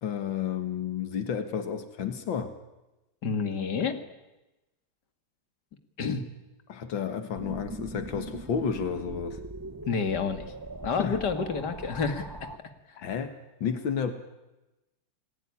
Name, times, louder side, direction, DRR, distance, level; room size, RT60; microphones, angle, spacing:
voice 1, 0.0-2.5 6.7-9.4 11.0-11.2 13.0-13.3 13.6-14.1, left 7 dB, 90° left, 8 dB, 2.4 m, -31 dB
voice 2, 3.2-4.0 6.0-6.3 9.9-10.5 10.8-12.3, left 5 dB, 60° left, 8 dB, 2.7 m, -29 dB
sound 1, 7.3-12.6, right 2 dB, 15° right, 0.8 m, -41 dB
29.5 x 20.5 x 9.9 m, 1.0 s
omnidirectional pair, 2.0 m